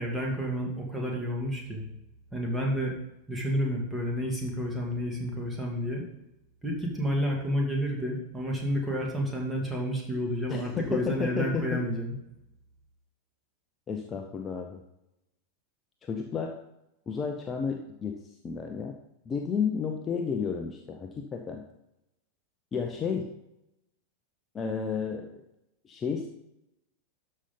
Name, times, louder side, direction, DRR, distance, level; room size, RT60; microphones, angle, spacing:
voice 1, 0.0-1.8 2.3-2.9 3.3-6.0 6.6-12.1, equal, 10° right, -1 dB, 2.4 m, -30 dB
voice 2, 10.5-11.8 13.9-14.8 16.0-16.6 17.1-18.2 18.4-18.9 19.3-21.6 22.7-23.3 24.5-25.4 25.8-26.3, left 6 dB, 20° left, 3 dB, 0.8 m, -32 dB
12.5 x 5.5 x 3.9 m, 0.87 s
figure-of-eight pair, 90°, 0 cm